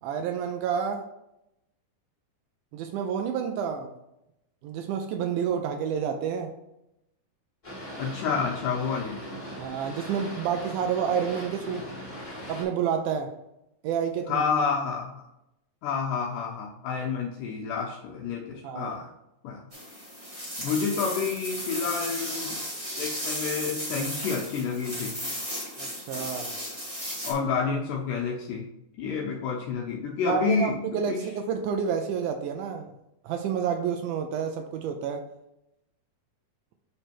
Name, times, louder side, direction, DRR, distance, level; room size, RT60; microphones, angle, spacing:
voice 1, 0.0-1.0 2.7-3.9 4.6-6.5 9.6-11.8 12.5-13.3 13.8-14.4 18.6-18.9 25.8-26.5 30.3-32.9 33.2-35.2, right 7 dB, 90° right, 5 dB, 1.8 m, -29 dB
Boat Water vehicle, 7.6-12.6, equal, 20° left, 1.1 m, -40 dB
voice 2, 8.0-9.2 14.3-15.2 15.8-19.1 19.4-19.6 20.6-22.6 23.0-25.2 27.2-28.7 29.0-30.8 31.1-31.3, left 5 dB, 80° left, -2 dB, 2.1 m, -29 dB
sound 1, 19.7-27.3, equal, 25° right, 1.4 m, -35 dB
7.5 x 3.3 x 4.4 m, 0.86 s
omnidirectional pair, 4.2 m